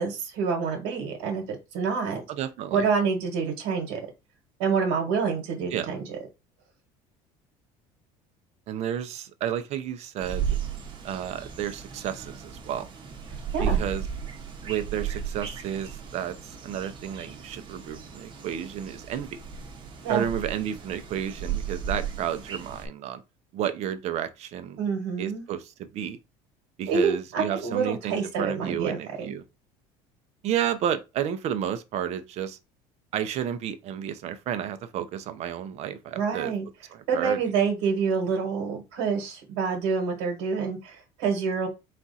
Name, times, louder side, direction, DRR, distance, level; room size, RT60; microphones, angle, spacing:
voice 1, 0.0-1.4 1.7-2.2 2.7-4.0 4.6-6.1 13.5-13.8 20.0-20.2 24.8-25.5 26.9-29.3 36.1-36.6 37.1-41.7, right 5 dB, 85° right, 1.3 m, -27 dB
voice 2, 2.3-2.8 5.7-5.9 8.7-10.6 11.0-12.9 13.6-14.0 14.6-19.4 20.1-23.2 23.5-24.8 25.2-26.2 26.8-29.4 30.4-32.6 33.1-36.5 36.9-37.4, right 10 dB, 55° right, 0.7 m, -31 dB
sound 1, 10.2-22.9, right 7 dB, 35° right, 1.1 m, -35 dB
4.2 x 2.5 x 4.1 m
cardioid pair, 120°, 14 cm